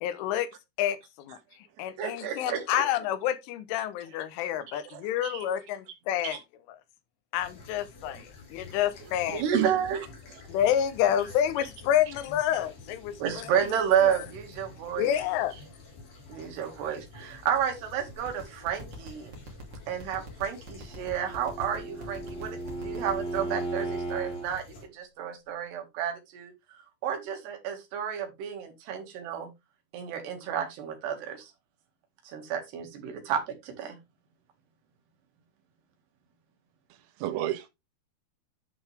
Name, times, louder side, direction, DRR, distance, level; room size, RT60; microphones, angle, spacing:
voice 1, 0.0-0.5 0.8-1.4 1.8-6.4 7.3-9.4 10.5-13.5 14.0-14.1 15.0-15.5, left 10 dB, 80° left, 3.4 m, -28 dB
voice 2, 2.0-2.7 5.2-5.5 6.2-6.4 9.3-10.0 11.6-11.7 13.2-15.1 16.3-19.3 19.9-24.7 24.9-26.5 27.0-29.5 29.9-31.5 32.3-34.0, right 8 dB, 65° right, 3.8 m, -31 dB
sound 1, 7.4-24.9, left 3 dB, 45° left, 4.4 m, -49 dB
voice 3, 8.7-9.1 9.5-10.0 11.1-11.2 36.9-37.7, right 12 dB, 80° right, 3.5 m, -33 dB
sound 2, 18.2-23.5, right 4 dB, 30° right, 2.2 m, -44 dB
Bowed string instrument, 20.8-24.5, right 2 dB, 60° left, 5.3 m, -36 dB
10.5 x 5.7 x 3.4 m
omnidirectional pair, 5.7 m